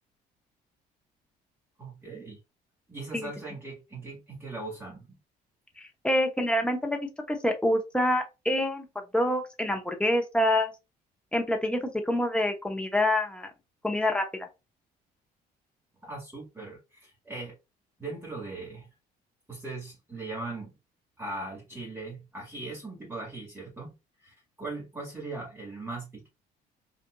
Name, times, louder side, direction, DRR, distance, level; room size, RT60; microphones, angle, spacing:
voice 1, 1.8-2.4 2.9-5.2 16.0-17.6 18.0-18.9 19.5-20.7 21.2-23.9 24.2-26.3, right 3 dB, 10° right, 1.9 m, -39 dB
voice 2, 5.8-8.9 9.1-10.7 11.3-13.5 13.8-14.5, left 1 dB, 5° left, 0.8 m, -27 dB
4.2 x 2.5 x 2.2 m
cardioid pair, 110°, 17 cm